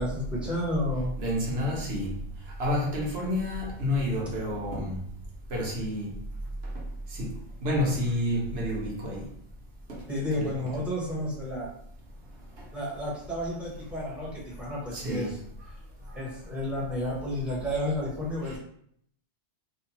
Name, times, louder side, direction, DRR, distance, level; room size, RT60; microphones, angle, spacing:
voice 1, 0.0-1.1 10.1-11.7 12.7-15.4 16.1-18.6, left 1 dB, ahead, -6 dB, 0.7 m, -31 dB
voice 2, 1.2-2.2 2.6-5.0 5.5-6.1 7.1-9.3 9.9-10.0 10.3-10.7 14.6-15.3 18.4-18.6, left 1 dB, 60° right, -2 dB, 1.0 m, -30 dB
2.6 x 2.2 x 2.8 m, 0.66 s
omnidirectional pair, 1.2 m